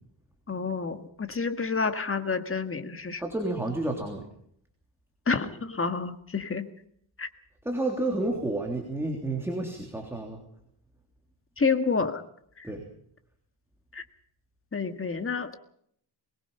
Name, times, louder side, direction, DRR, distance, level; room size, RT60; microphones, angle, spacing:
voice 1, 0.5-3.2 5.3-6.7 7.2-7.3 11.6-12.2 12.6-12.7 13.9-14.0 14.7-15.6, left 4 dB, 25° left, 8 dB, 1.8 m, -29 dB
voice 2, 3.2-4.3 7.6-10.4 12.6-12.8, right 2 dB, 5° right, 1 dB, 3.4 m, -30 dB
23.0 x 21.0 x 5.6 m, 0.67 s
wide cardioid pair, 145°, 47 cm